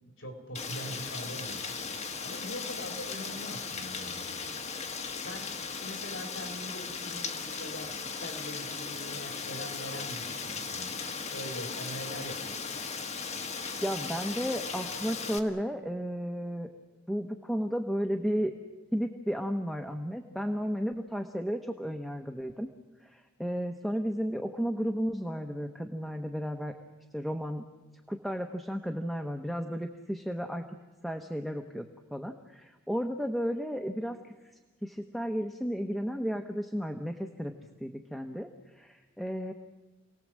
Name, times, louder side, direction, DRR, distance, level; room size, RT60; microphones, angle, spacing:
voice 1, 0.2-1.9 2.2-4.4 5.2-10.9 11.3-12.8, equal, 65° left, 2 dB, 3.9 m, -42 dB
Rain, 0.5-15.4, left 5 dB, 35° left, 1.6 m, -37 dB
voice 2, 13.8-16.7 17.1-18.5 18.9-22.7 23.0-26.7 27.1-27.6 28.1-30.6 31.0-31.9 32.1-34.3 34.8-37.5 37.8-38.5 38.8-39.5, equal, ahead, 4 dB, 1.0 m, -33 dB
28.5 x 19.0 x 7.5 m, 1.2 s
head